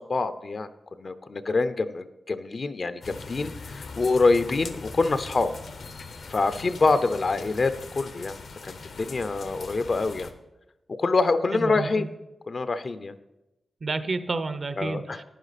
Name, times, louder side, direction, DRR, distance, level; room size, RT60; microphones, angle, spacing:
voice 1, 0.1-0.7 1.0-5.5 6.3-8.3 8.7-10.3 10.9-12.1 12.5-13.1 14.8-15.2, left 3 dB, 45° left, 12 dB, 0.5 m, -25 dB
sound 1, 3.0-10.3, left 4 dB, 75° left, 0.9 m, -41 dB
voice 2, 11.5-12.1 13.8-15.2, right 3 dB, 45° right, 11 dB, 0.7 m, -30 dB
10.5 x 10.0 x 4.1 m, 0.96 s
wide cardioid pair, 105°, 0 cm